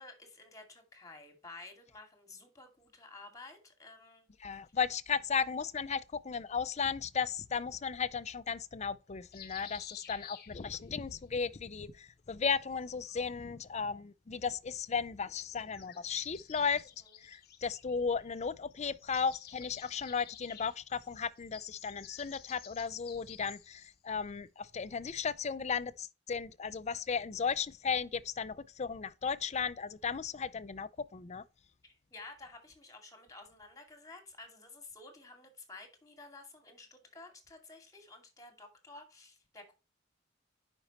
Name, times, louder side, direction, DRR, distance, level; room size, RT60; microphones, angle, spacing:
voice 1, 0.0-4.3 4.5-4.6 17.0-17.1 31.8-39.7, left 3 dB, 20° left, 2.3 m, -52 dB
voice 2, 4.4-16.9 17.2-31.4, left 6 dB, 35° left, 0.5 m, -35 dB
sound 1, 9.3-11.1 12.5-13.5 15.5-18.4 18.7-23.9, left 10 dB, 55° left, 0.9 m, -53 dB
10.0 x 5.3 x 3.0 m
head